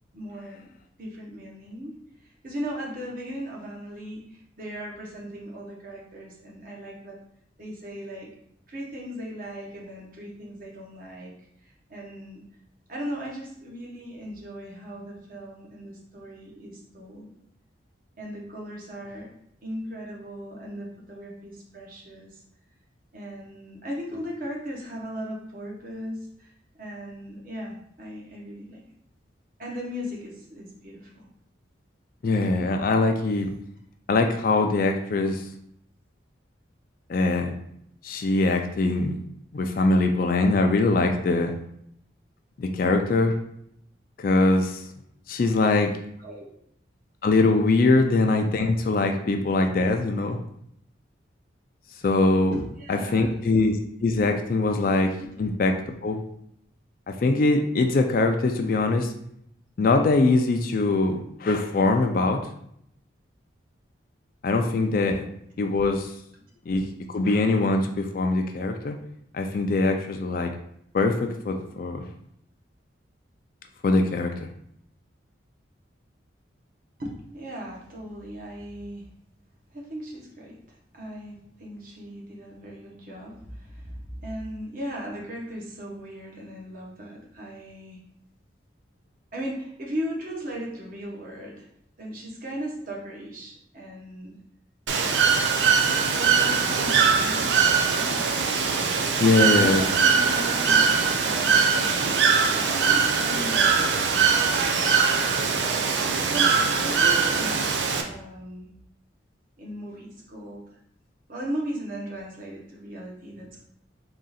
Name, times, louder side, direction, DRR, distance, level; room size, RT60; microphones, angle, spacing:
voice 1, 0.1-0.7 1.0-7.2 7.6-8.3 8.7-11.3 11.6-12.4 12.9-17.3 18.2-19.3 19.6-22.4 23.1-26.5 26.8-28.8 29.6-31.2 46.2-46.4 52.5-53.4 55.2-55.3 65.0-65.1 77.0-79.1 79.7-88.0 89.3-91.7 92.0-94.4 96.1-98.3 99.5-106.5 106.8-108.7 109.6-110.6 111.3-113.6, equal, 45° right, -2 dB, 0.9 m, -37 dB
voice 2, 32.2-33.5 34.1-35.4 37.1-37.6 38.0-39.1 39.5-41.5 42.6-43.3 44.2-44.8 45.3-45.9 47.2-50.4 52.0-52.6 52.9-53.8 54.0-55.7 56.0-56.2 57.2-59.1 59.8-62.4 64.4-65.2 65.6-66.1 66.7-66.8 67.1-69.0 69.3-70.5 70.9-72.0 73.8-74.5 99.2-99.8, left 3 dB, 45° left, 4 dB, 0.3 m, -22 dB
Bird / Water, 94.9-108.0, right 5 dB, 70° right, 0.4 m, -22 dB
3.7 x 2.4 x 4.0 m, 0.72 s
head